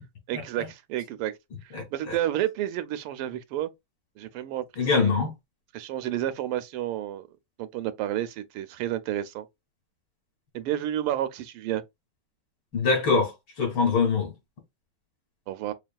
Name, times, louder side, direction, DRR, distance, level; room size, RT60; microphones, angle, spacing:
voice 1, 0.3-1.3 1.6-3.7 4.2-4.6 5.0-5.1 5.7-7.3 7.6-9.5 10.5-11.8 15.5-15.7, right 12 dB, 85° right, 1.5 m, -30 dB
voice 2, 1.7-2.2 4.8-5.3 12.7-14.3, left 4 dB, 65° left, 3.0 m, -24 dB
6.4 x 2.3 x 2.3 m
omnidirectional pair, 2.4 m